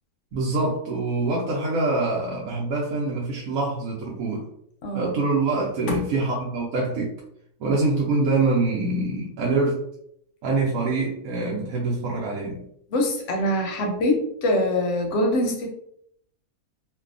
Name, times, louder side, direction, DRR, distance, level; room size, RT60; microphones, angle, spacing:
voice 1, 0.3-4.4 4.9-7.1 7.6-9.9 10.4-12.6, right 3 dB, 75° right, -4 dB, 1.0 m, -25 dB
voice 2, 4.8-5.2 5.9-6.0 12.9-15.7, left 1 dB, 65° left, 2 dB, 0.8 m, -24 dB
2.6 x 2.2 x 2.4 m, 0.70 s
omnidirectional pair, 1.5 m